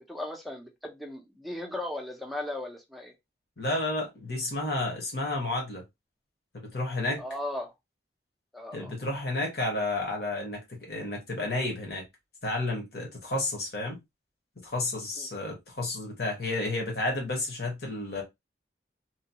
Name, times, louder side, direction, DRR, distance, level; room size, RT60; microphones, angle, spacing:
voice 1, 0.1-3.1 7.2-7.7 8.5-8.9 15.2-15.3, left 1 dB, ahead, 0.5 m, -37 dB
voice 2, 3.6-5.8 6.5-7.2 8.7-12.0 12.4-14.0 14.6-18.2, left 2 dB, 60° left, 1.2 m, -31 dB
3.0 x 2.3 x 2.8 m
head